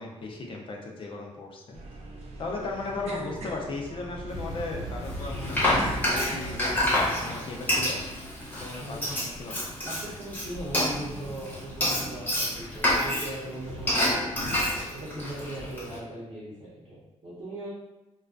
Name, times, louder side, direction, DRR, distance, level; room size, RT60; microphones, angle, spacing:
voice 1, 0.0-1.8 2.4-8.0 8.6-9.6, left 3 dB, 50° left, 0 dB, 0.5 m, -37 dB
sound 1, 1.7-7.3, right 2 dB, 75° right, 0.4 m, -41 dB
sound 2, 4.3-15.7, equal, 80° left, 0.8 m, -41 dB
Frying (food), 5.1-16.0, left 1 dB, 15° left, 0.7 m, -28 dB
voice 2, 8.8-9.2 9.8-14.3 14.8-17.7, right 1 dB, 40° right, -10 dB, 0.8 m, -39 dB
2.3 x 2.2 x 2.4 m, 1.0 s
cardioid pair, 135°, 11 cm